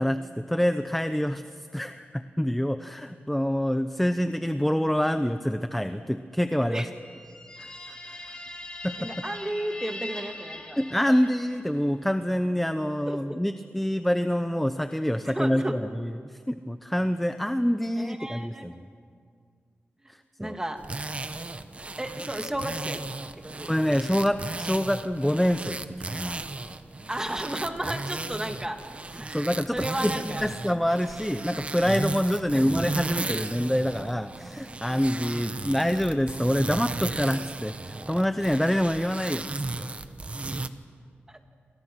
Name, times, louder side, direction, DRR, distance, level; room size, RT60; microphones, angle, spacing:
voice 1, 0.0-1.4 1.7-6.8 7.6-7.7 8.8-9.1 10.8-15.8 16.5-18.7 20.4-20.6 23.7-25.8 26.1-26.4 29.3-29.8 30.0-39.5 39.8-39.9, equal, 5° left, 9 dB, 0.8 m, -26 dB
sound 1, 7.0-11.7, left 1 dB, 25° left, 4.9 m, -41 dB
voice 2, 9.0-10.8 11.1-11.2 13.1-13.2 15.2-15.8 18.0-18.7 20.0-20.1 20.4-20.8 22.0-23.0 23.4-24.0 27.1-28.8 29.2-29.5 29.7-30.5 32.5-32.9 35.5-35.8 41.3-41.4, right 1 dB, 15° right, 5 dB, 2.5 m, -33 dB
sound 2, 20.8-40.7, right 2 dB, 30° right, 1.1 m, -35 dB
29.5 x 26.5 x 6.4 m, 2.1 s
cardioid pair, 85°, 4 cm